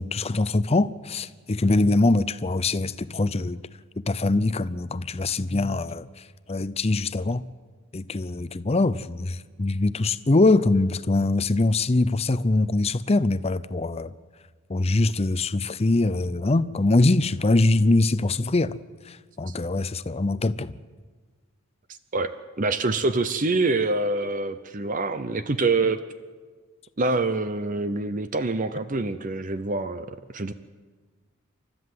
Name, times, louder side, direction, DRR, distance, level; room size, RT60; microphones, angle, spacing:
voice 1, 0.0-3.6 4.0-6.1 6.5-7.4 7.9-14.1 14.7-18.8 19.1-20.7, left 2 dB, 30° left, 0.6 m, -23 dB
voice 2, 22.1-26.0 27.0-30.5, right 3 dB, 40° right, 0.7 m, -26 dB
29.0 x 13.0 x 7.8 m
head